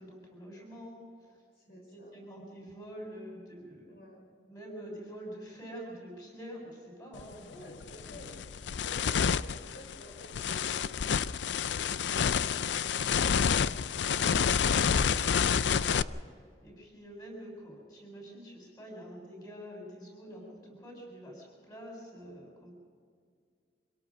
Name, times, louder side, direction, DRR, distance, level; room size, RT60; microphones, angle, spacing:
voice 1, 0.0-1.4 1.7-4.0 4.5-7.5 8.0-8.2 14.5-22.7, equal, 20° left, 0 dB, 7.0 m, -47 dB
voice 2, 1.5-2.2 3.8-4.2 7.4-8.4 8.8-11.8 20.2-20.5, left 1 dB, 55° left, -1 dB, 4.7 m, -52 dB
sound 1, 7.2-7.3 7.8-16.0, left 7 dB, 75° left, 0.4 m, -28 dB
25.5 x 17.5 x 6.3 m, 2.1 s
head